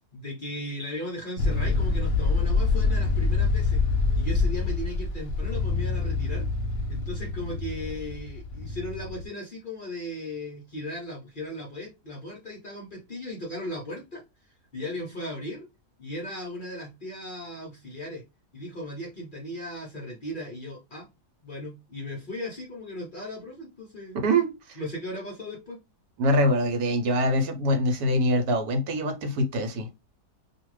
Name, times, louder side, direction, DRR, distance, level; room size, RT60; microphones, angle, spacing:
voice 1, 0.1-3.8 4.2-6.5 6.9-14.2 14.7-15.7 16.0-18.2 18.5-21.1 21.4-24.2 24.8-25.8, left 1 dB, 45° left, 0.7 m, -37 dB
sound 1, 1.4-9.3, left 4 dB, 70° left, 1.0 m, -26 dB
voice 2, 24.2-24.8 26.2-29.9, equal, 75° right, 1.2 m, -24 dB
2.5 x 2.4 x 3.1 m
omnidirectional pair, 1.7 m